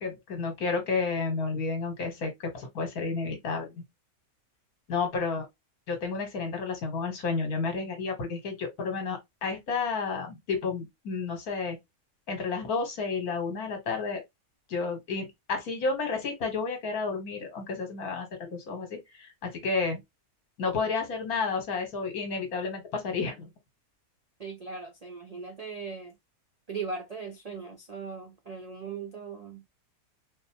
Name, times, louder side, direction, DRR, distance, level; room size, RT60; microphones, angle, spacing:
voice 1, 0.0-3.8 4.9-5.5 5.9-11.8 12.3-14.2 14.7-20.0 20.6-23.5, left 4 dB, 75° left, 1.7 m, -31 dB
voice 2, 24.4-26.1 26.7-29.6, right 5 dB, 70° right, 0.3 m, -39 dB
4.6 x 2.1 x 2.7 m
omnidirectional pair, 1.6 m